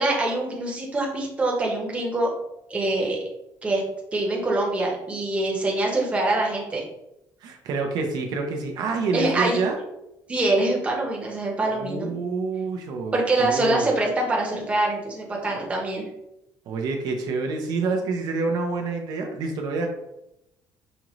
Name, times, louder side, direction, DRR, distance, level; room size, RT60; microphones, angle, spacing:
voice 1, 0.0-2.3 2.7-3.2 3.6-3.8 4.1-6.8 9.1-9.6 10.3-12.1 13.1-16.1, right 2 dB, 15° right, -1 dB, 0.8 m, -24 dB
voice 2, 7.4-9.8 11.7-13.9 16.7-19.9, right 4 dB, 70° right, 2 dB, 0.6 m, -27 dB
5.2 x 2.5 x 3.0 m, 0.87 s
cardioid pair, 155°, 7 cm